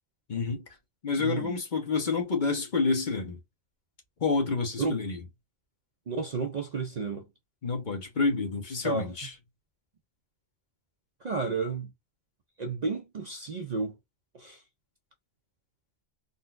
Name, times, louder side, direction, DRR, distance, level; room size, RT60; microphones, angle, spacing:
voice 1, 0.3-0.6 1.0-3.4 4.2-5.2 7.6-9.3, left 4 dB, 50° left, 0.9 m, -28 dB
voice 2, 1.2-1.6 4.8-4.9 6.1-7.3 8.8-9.1 11.2-11.9 12.6-13.9 14.4-14.6, right 4 dB, 50° right, 0.5 m, -31 dB
3.8 x 2.2 x 2.4 m
omnidirectional pair, 1.1 m